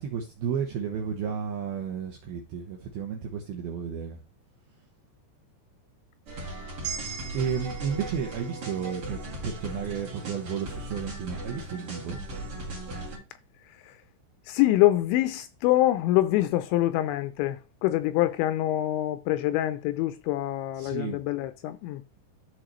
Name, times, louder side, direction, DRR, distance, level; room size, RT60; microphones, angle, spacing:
voice 1, 0.0-4.2 7.3-12.2 20.7-21.2, right 7 dB, 80° right, 2.2 m, -32 dB
sound 1, 6.3-13.2, right 1 dB, 40° right, 2.1 m, -38 dB
sound 2, 6.8-11.1, right 7 dB, 60° right, 1.7 m, -42 dB
voice 2, 14.5-22.0, left 15 dB, 85° left, 2.7 m, -25 dB
12.5 x 4.7 x 3.1 m
omnidirectional pair, 5.6 m